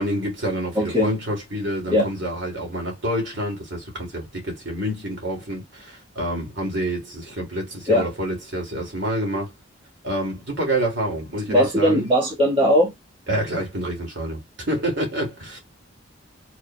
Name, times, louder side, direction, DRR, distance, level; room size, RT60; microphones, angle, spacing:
voice 1, 0.0-9.5 10.0-12.1 13.3-14.4 14.7-15.6, right 1 dB, 60° right, 2.8 m, -27 dB
voice 2, 0.7-1.1 1.9-2.1 7.9-8.1 11.5-12.9, equal, 25° right, 1.7 m, -19 dB
5.0 x 4.1 x 2.3 m
head